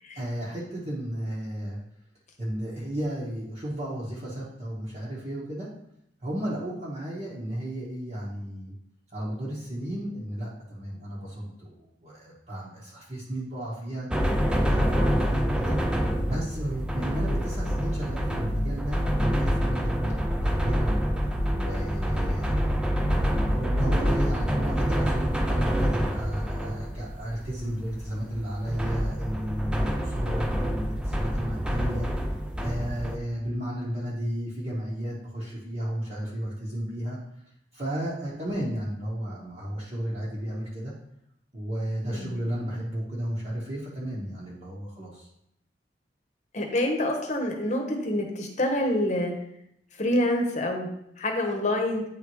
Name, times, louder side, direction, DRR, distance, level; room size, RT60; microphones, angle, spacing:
voice 1, 0.2-1.8 2.4-5.7 6.2-8.7 9.1-14.1 14.5-15.7 16.3-22.6 23.3-32.1 32.6-37.2 37.7-40.9 41.5-45.3, right 1 dB, 35° right, -8 dB, 1.1 m, -33 dB
sound 1, 14.1-33.2, equal, 5° right, 0.4 m, -27 dB
voice 2, 46.5-49.3 50.0-52.0, left 1 dB, 40° left, 2 dB, 1.0 m, -27 dB
9.2 x 3.5 x 3.1 m, 0.78 s
head